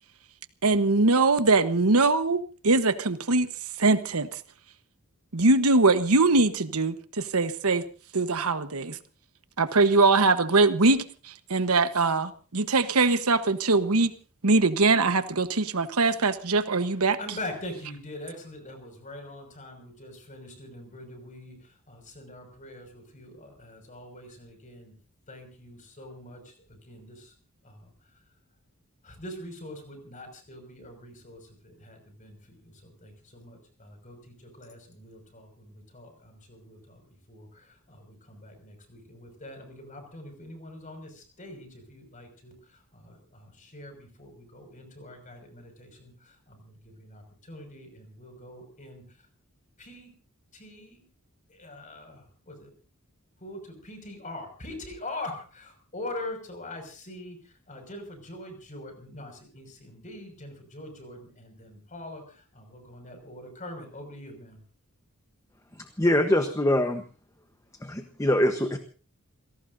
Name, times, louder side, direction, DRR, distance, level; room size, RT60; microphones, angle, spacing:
voice 1, 0.6-3.5 3.8-4.3 5.3-7.8 8.1-9.0 9.6-11.0 11.5-14.1 14.4-17.2, right 3 dB, 75° right, 10 dB, 1.2 m, -22 dB
voice 2, 17.2-21.5 21.9-24.9 25.3-26.5 26.9-27.3 27.6-27.9 29.0-37.0 37.3-42.5 42.9-49.0 49.8-50.1 50.5-51.0 51.5-52.7 53.4-57.4 57.7-64.6, left 1 dB, 35° left, 5 dB, 6.0 m, -43 dB
voice 3, 66.0-67.0 67.8-68.8, left 1 dB, 15° left, 7 dB, 1.1 m, -23 dB
28.5 x 17.5 x 2.7 m, 0.37 s
head